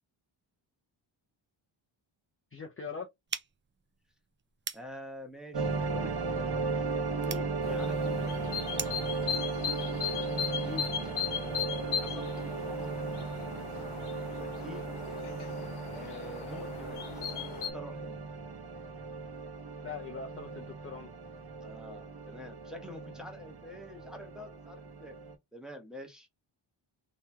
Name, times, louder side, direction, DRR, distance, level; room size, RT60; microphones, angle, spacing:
voice 1, 2.5-3.1 19.8-21.1, left 5 dB, 25° left, 0.5 m, -41 dB
sound 1, 3.3-9.1, right 6 dB, 25° right, 0.4 m, -44 dB
voice 2, 4.7-6.6 7.0-8.4 10.4-10.9 11.3-12.9 14.4-15.2 15.9-17.3 17.7-18.2 21.6-25.2 25.5-26.3, left 1 dB, ahead, 1.0 m, -46 dB
sound 2, 5.5-25.4, right 4 dB, 50° right, 1.0 m, -36 dB
sound 3, 7.6-17.7, left 8 dB, 75° left, 1.1 m, -38 dB
3.2 x 2.9 x 3.4 m
wide cardioid pair, 150°, 50 cm